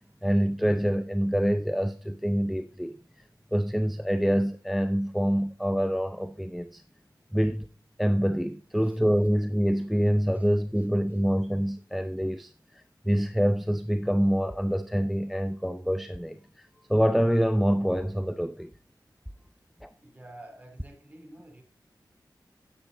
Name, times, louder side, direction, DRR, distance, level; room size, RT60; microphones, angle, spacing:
voice 1, 0.2-3.0 3.5-6.8 7.3-7.7 8.0-18.7 19.8-19.9, equal, ahead, 0.5 m, -26 dB
voice 2, 20.0-21.6, right 1 dB, 20° right, 2.7 m, -49 dB
10.0 x 8.8 x 3.8 m
wide cardioid pair, 105°, 8 cm